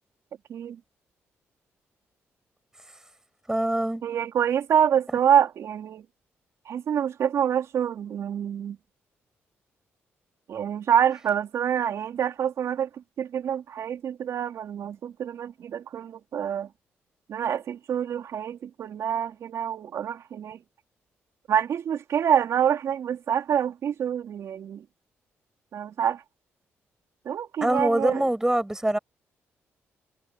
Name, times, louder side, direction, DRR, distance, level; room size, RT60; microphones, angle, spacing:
voice 1, 0.5-0.8 4.0-6.1 6.7-8.8 10.5-16.7 17.3-20.6 21.5-24.8 25.7-26.2 27.2-28.3, right 9 dB, 70° right, 3.9 m, -26 dB
voice 2, 3.5-4.0 27.6-29.0, right 1 dB, 10° right, 7.8 m, -24 dB
cardioid pair, 65°, 5 cm